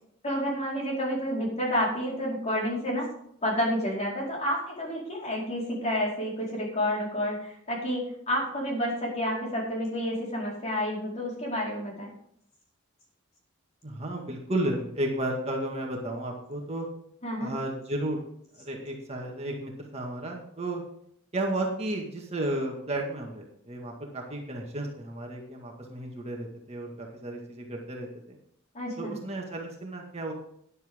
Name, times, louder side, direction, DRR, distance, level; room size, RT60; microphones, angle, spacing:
voice 1, 0.2-3.1 3.4-12.1 17.2-17.5 28.7-29.2, equal, 35° left, -3 dB, 4.5 m, -30 dB
voice 2, 13.8-16.9 17.4-18.2 18.6-20.8 21.3-28.4 29.0-30.3, right 1 dB, 30° right, 0 dB, 1.9 m, -33 dB
13.0 x 10.0 x 3.7 m, 0.70 s
head